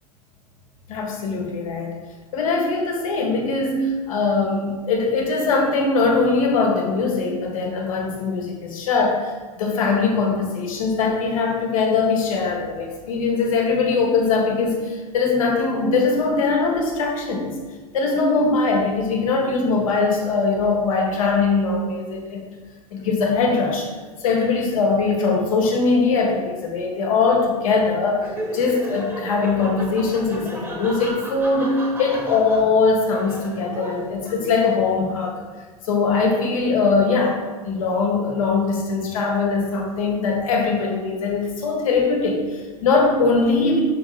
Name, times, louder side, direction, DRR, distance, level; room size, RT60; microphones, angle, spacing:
voice 1, 0.9-1.9 2.3-9.3 9.6-17.5 17.9-22.5 22.9-23.9 24.2-35.3 35.8-43.8, left 4 dB, 60° left, 1 dB, 1.6 m, -21 dB
Laughter, 28.1-34.7, equal, 15° right, 1.6 m, -34 dB
6.8 x 3.6 x 5.0 m, 1.4 s
figure-of-eight pair, 90°, 19 cm